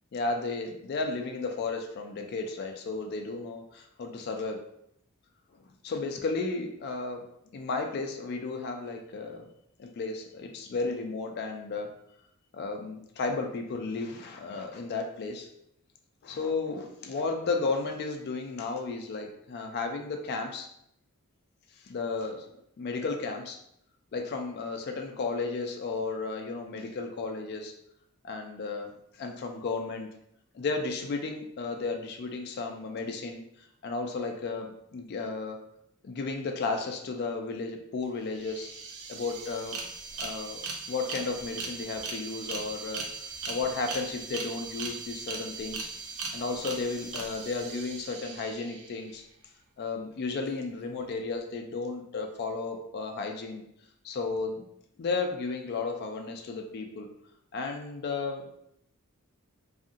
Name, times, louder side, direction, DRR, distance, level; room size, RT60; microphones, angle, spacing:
voice 1, 0.1-4.6 5.8-7.2 7.5-9.5 9.8-11.9 12.5-15.5 16.2-20.7 21.8-23.6 24.1-27.7 28.2-28.9 29.2-30.1 30.5-35.6 36.0-38.7 39.1-39.8 40.2-43.1 43.5-45.9 46.3-49.2 49.8-53.6 54.0-54.6 55.0-57.1 57.5-58.5, left 3 dB, 50° left, 4 dB, 0.3 m, -33 dB
sound 1, 38.0-38.1 38.3-49.1, right 4 dB, 75° right, 0.5 m, -39 dB
2.7 x 2.5 x 2.5 m, 0.74 s
head